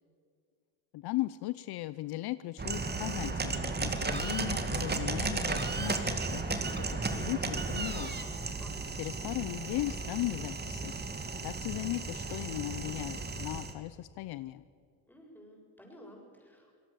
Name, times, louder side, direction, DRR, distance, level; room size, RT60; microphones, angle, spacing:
voice 1, 0.9-8.2 9.0-11.0 11.4-14.6, left 17 dB, 65° left, 15 dB, 0.7 m, -37 dB
sound 1, 2.6-13.7, right 3 dB, 25° right, 2.4 m, -34 dB
voice 2, 15.1-16.7, equal, 5° left, 0 dB, 7.5 m, -53 dB
26.0 x 18.0 x 7.0 m, 2.2 s
supercardioid pair, 90°, 42 cm